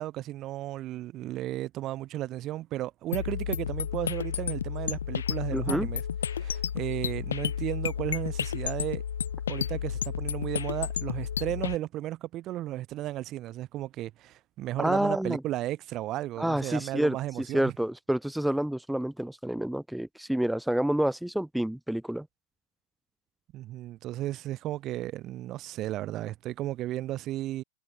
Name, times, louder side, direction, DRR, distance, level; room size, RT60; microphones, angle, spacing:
voice 1, 0.0-6.0 6.3-9.0 9.5-17.7 23.5-27.6, right 14 dB, 40° right, 3.4 m, -34 dB
sound 1, 3.1-11.8, left 8 dB, 90° left, 3.5 m, -32 dB
voice 2, 5.5-5.9 14.8-15.4 16.4-22.3, right 1 dB, ahead, 3.0 m, -28 dB
hypercardioid pair, 115°, 0 cm